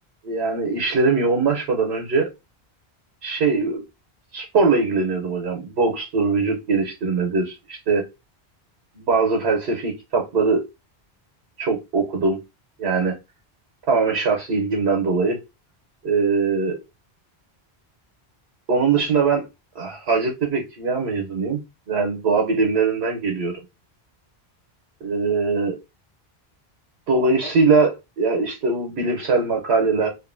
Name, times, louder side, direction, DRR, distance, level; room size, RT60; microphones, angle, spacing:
voice 1, 0.2-2.3 3.2-3.8 4.3-8.0 8.9-10.6 11.6-12.4 12.8-13.1 13.9-15.4 16.0-16.8 18.7-19.4 19.7-21.6 21.9-23.6 25.0-25.8 27.1-30.1, right 4 dB, 85° right, 1.0 m, -21 dB
2.6 x 2.5 x 2.4 m
omnidirectional pair, 1.1 m